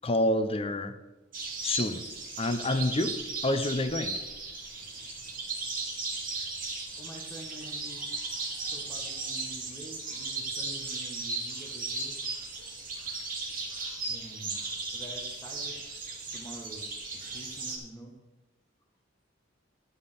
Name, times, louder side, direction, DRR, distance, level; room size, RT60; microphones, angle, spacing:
voice 1, 0.0-0.9 1.6-2.0 2.4-3.2 3.4-4.2, left 1 dB, 30° left, 9 dB, 0.8 m, -27 dB
sound 1, 1.3-17.8, right 3 dB, 45° right, 2.5 m, -36 dB
voice 2, 7.0-8.1 8.6-12.1 14.1-14.6 14.9-15.7 16.3-16.9 17.1-18.1, right 1 dB, 15° left, -2 dB, 1.5 m, -47 dB
11.5 x 5.6 x 6.8 m, 1.1 s
head